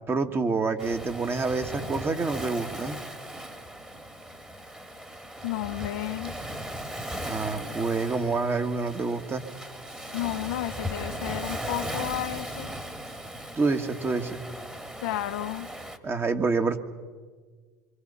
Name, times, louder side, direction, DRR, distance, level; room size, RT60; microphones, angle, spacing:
voice 1, 0.1-3.0 7.2-9.4 13.6-14.4 16.0-16.8, right 4 dB, 25° right, 1.8 m, -27 dB
Waves surf, 0.8-16.0, equal, 10° right, 1.9 m, -37 dB
voice 2, 5.4-6.3 10.1-12.7 15.0-15.7, left 14 dB, 75° left, 0.9 m, -32 dB
27.0 x 24.0 x 5.6 m
hypercardioid pair, 90°, 10 cm